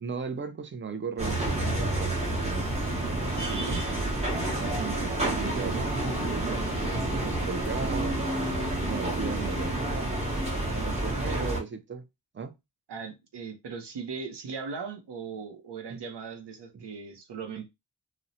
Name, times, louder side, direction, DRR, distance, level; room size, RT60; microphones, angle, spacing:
voice 1, 0.0-2.4 4.7-8.2 8.8-10.2 10.7-12.0 12.3-12.5 15.9-16.0 16.7-16.8, right 6 dB, 30° right, 0.4 m, -37 dB
sound 1, 1.2-11.6, right 1 dB, 15° right, 0.8 m, -29 dB
voice 2, 3.2-3.9 11.3-11.6 12.9-17.7, right 5 dB, 75° right, 0.6 m, -38 dB
2.8 x 2.0 x 2.6 m
wide cardioid pair, 100°, 42 cm